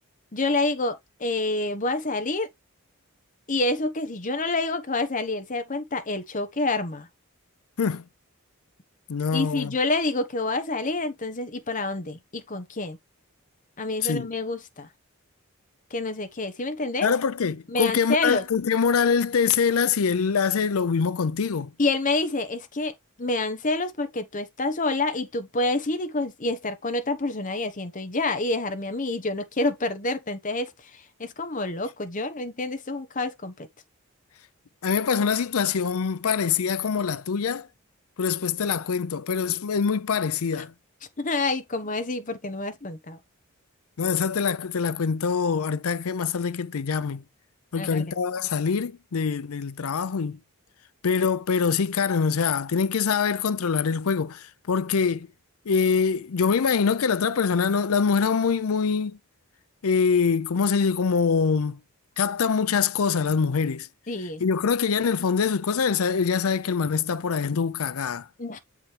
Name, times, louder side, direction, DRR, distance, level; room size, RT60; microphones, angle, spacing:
voice 1, 0.3-2.5 3.5-7.1 9.3-13.0 13.8-14.9 15.9-17.1 17.7-18.4 21.8-22.9 23.2-30.7 31.2-33.7 41.2-43.2 47.8-48.1 64.1-64.4 68.4-68.6, left 2 dB, 35° left, 1.0 m, -28 dB
voice 2, 9.1-9.8 14.0-14.3 17.0-21.7 34.8-37.7 38.2-40.7 44.0-47.2 47.7-50.4 51.0-55.3 55.7-59.2 59.8-61.8 62.2-63.9 64.4-68.3, left 6 dB, 75° left, 0.5 m, -24 dB
7.4 x 5.0 x 3.2 m
head